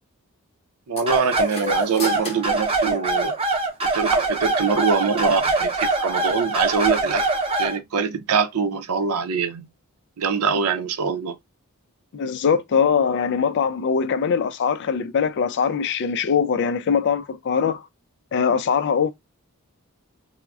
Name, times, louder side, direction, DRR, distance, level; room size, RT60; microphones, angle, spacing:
voice 1, 0.9-3.3 3.9-7.3 7.6-9.7 10.2-11.4, right 5 dB, 90° right, 0.5 m, -24 dB
sound 1, 1.0-3.6, left 2 dB, 25° left, 0.8 m, -34 dB
sound 2, 1.1-7.8, right 3 dB, 25° right, 0.7 m, -23 dB
voice 2, 12.1-17.8 18.3-19.1, left 6 dB, 50° left, 0.3 m, -22 dB
3.5 x 2.0 x 2.3 m
head